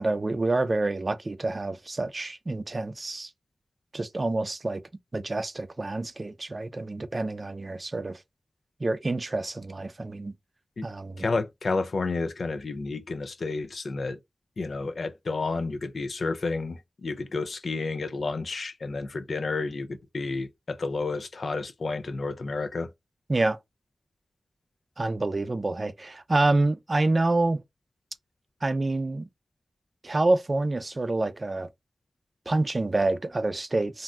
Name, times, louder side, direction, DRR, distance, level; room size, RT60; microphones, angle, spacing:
voice 1, 0.0-3.3 3.9-4.8 5.1-8.2 8.8-10.3 10.8-11.3 23.3-23.6 25.0-27.6 28.6-29.3 30.0-31.7 32.5-34.0, right 2 dB, 45° right, 0.4 m, -27 dB
voice 2, 11.2-14.2 14.6-22.9, left 3 dB, 75° left, 0.3 m, -31 dB
2.6 x 2.1 x 3.5 m
cardioid pair, 45°, 0 cm